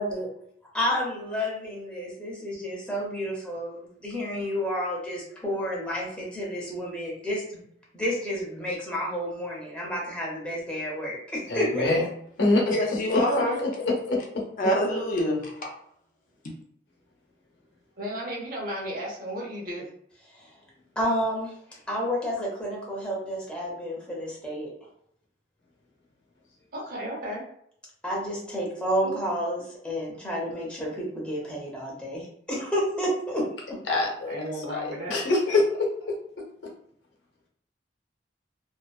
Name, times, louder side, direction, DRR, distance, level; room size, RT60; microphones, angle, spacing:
voice 1, 0.7-7.6 7.9-12.0 20.3-20.5 21.0-21.5 21.9-24.7 28.0-33.4, equal, 5° left, 0.7 m, -30 dB
voice 2, 11.5-12.1 12.4-12.6 13.1-14.4 33.9-34.4 34.7-34.8 35.1-35.9, left 2 dB, 85° left, 0.8 m, -24 dB
voice 3, 12.7-13.6 14.6-15.7 16.4-16.5, equal, 50° left, 0.5 m, -26 dB
voice 4, 18.0-19.9 26.7-27.4 29.0-29.2 34.3-35.2, equal, 55° right, 0.8 m, -34 dB
2.5 x 2.2 x 2.2 m
head